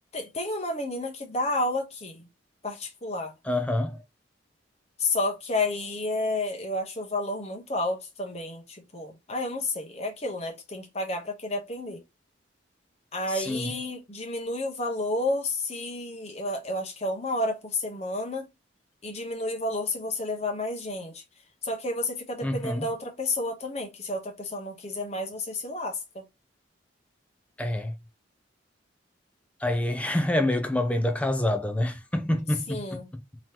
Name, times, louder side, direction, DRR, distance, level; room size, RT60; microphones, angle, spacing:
voice 1, 0.1-2.3 2.6-3.3 5.0-12.0 13.1-18.5 19.0-21.2 21.6-26.2 32.7-33.1, left 2 dB, 35° left, 1.0 m, -31 dB
voice 2, 3.5-4.0 13.3-13.7 22.4-22.9 27.6-27.9 29.6-33.0, left 1 dB, 5° left, 0.4 m, -27 dB
3.6 x 3.0 x 2.9 m
head